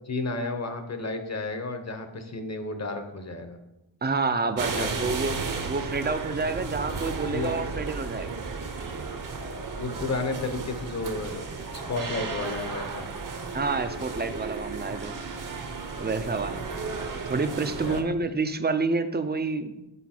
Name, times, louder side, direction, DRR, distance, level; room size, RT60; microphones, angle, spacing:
voice 1, 0.1-3.6 4.8-5.1 7.3-7.5 9.8-11.5 11.9-13.1 16.3-16.5 17.8-18.0, left 3 dB, 35° left, 7 dB, 0.8 m, -32 dB
voice 2, 4.0-8.4 13.5-15.2 16.0-16.6 17.3-19.8, right 4 dB, 25° right, 9 dB, 0.4 m, -28 dB
sound 1, 4.6-18.0, right 4 dB, 45° right, 0.8 m, -34 dB
8.2 x 4.6 x 4.3 m, 0.93 s
wide cardioid pair, 155°, 47 cm